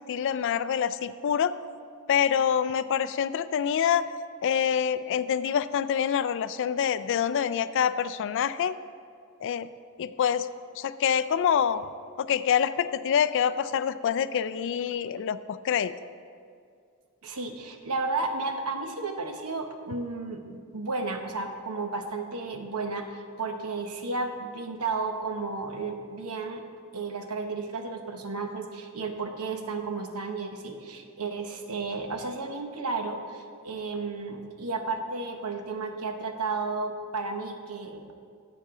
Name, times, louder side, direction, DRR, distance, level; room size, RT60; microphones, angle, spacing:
voice 1, 0.0-1.5 2.1-4.1 4.4-8.7 9.4-9.7 10.0-10.5 10.8-11.8 12.2-15.9, left 8 dB, 60° left, 14 dB, 0.3 m, -26 dB
voice 2, 17.2-26.6 26.9-38.1, right 3 dB, 85° right, 5 dB, 0.9 m, -33 dB
11.5 x 7.5 x 3.7 m, 2.3 s
head